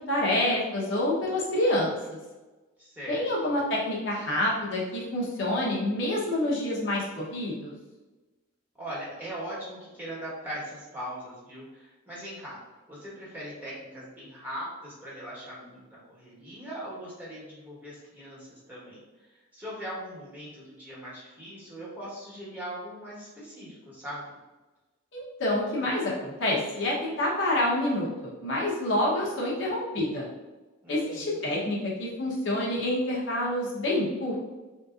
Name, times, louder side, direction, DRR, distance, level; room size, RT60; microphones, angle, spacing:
voice 1, 0.1-2.2 3.1-7.7 25.1-28.1 28.4-30.3 30.9-34.4, left 1 dB, 60° left, -4 dB, 0.8 m, -27 dB
voice 2, 2.8-3.3 8.8-12.6 12.9-19.0 19.5-24.3 30.8-31.4, equal, 10° right, -8 dB, 1.1 m, -40 dB
3.8 x 2.7 x 2.4 m, 1.1 s
head